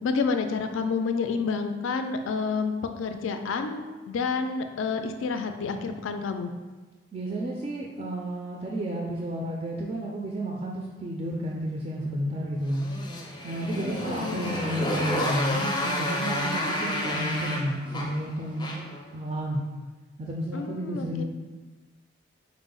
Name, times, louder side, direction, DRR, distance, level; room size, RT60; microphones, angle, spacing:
voice 1, 0.0-3.8 4.1-6.5 13.7-14.6 20.5-21.2, left 4 dB, 80° left, 7 dB, 0.3 m, -29 dB
voice 2, 7.1-12.9 13.4-18.7 19.1-19.6 20.2-21.2, right 1 dB, 30° right, -2 dB, 0.3 m, -31 dB
Motorcycle, 12.7-19.0, left 1 dB, 25° left, 0.5 m, -30 dB
4.6 x 2.0 x 3.7 m, 1.2 s
head